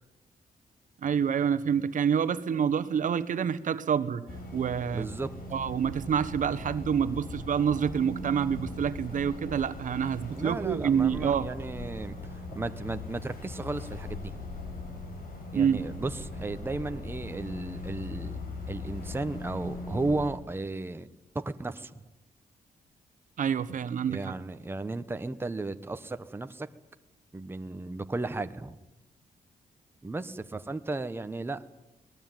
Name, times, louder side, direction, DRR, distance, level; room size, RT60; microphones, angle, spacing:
voice 1, 1.0-4.2 4.5-5.1 5.5-11.5 15.5-15.8 23.4-24.3, right 7 dB, 60° right, 13 dB, 1.3 m, -27 dB
sound 1, 4.3-20.3, left 2 dB, 85° left, 6.7 m, -40 dB
voice 2, 4.9-5.3 10.4-14.4 15.5-18.4 18.7-21.1 21.3-21.9 24.0-26.7 27.3-28.8 30.0-31.6, right 2 dB, 15° right, 9 dB, 1.1 m, -34 dB
22.5 x 19.5 x 9.3 m, 0.98 s
cardioid pair, 110°, 15 cm